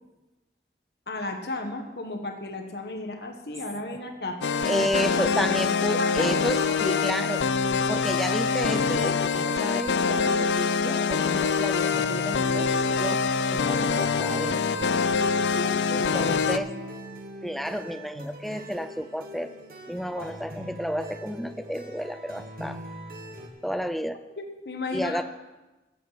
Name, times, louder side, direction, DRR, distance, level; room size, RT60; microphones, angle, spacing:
voice 1, 1.1-4.4 4.7-5.6 6.0-6.3 6.6-7.1 15.6-16.1 20.2-20.3 24.4-25.2, left 2 dB, 70° left, 5 dB, 1.5 m, -34 dB
sound 1, 4.4-16.6, left 5 dB, 85° left, 0.5 m, -25 dB
voice 2, 4.6-7.4 7.9-13.2 13.5-14.9 15.9-16.7 17.4-19.5 19.9-22.8 23.6-24.2 24.9-25.2, equal, ahead, 11 dB, 0.4 m, -31 dB
sound 2, 10.1-23.5, right 1 dB, 55° right, 1.9 m, -42 dB
14.5 x 8.4 x 5.9 m, 1.1 s
head